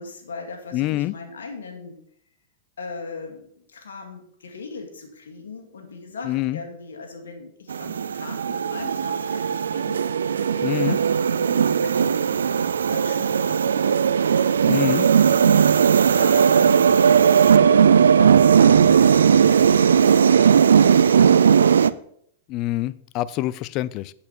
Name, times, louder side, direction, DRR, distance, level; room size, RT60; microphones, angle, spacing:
voice 1, 0.0-2.0 2.8-13.9 15.4-15.8 16.0-21.6, left 4 dB, 90° left, 3 dB, 2.3 m, -39 dB
voice 2, 0.7-1.1 6.2-6.6 10.6-11.0 14.7-15.1 22.5-24.1, left 16 dB, 45° left, 18 dB, 0.5 m, -25 dB
sound 1, 7.7-21.9, right 7 dB, 90° right, 0.4 m, -17 dB
8.4 x 8.2 x 4.4 m, 0.66 s
hypercardioid pair, 115°, 0 cm